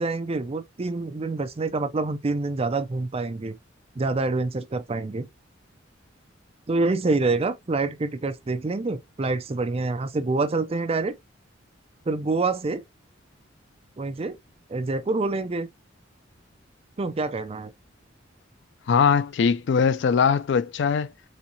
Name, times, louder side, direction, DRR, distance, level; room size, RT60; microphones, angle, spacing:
voice 1, 0.0-3.6 4.0-5.3 6.7-11.1 12.1-12.8 14.0-14.4 14.7-15.7 17.0-17.7, right 3 dB, 30° right, 0.4 m, -26 dB
voice 2, 18.9-21.1, left 6 dB, 65° left, 0.3 m, -21 dB
4.4 x 3.5 x 2.7 m
head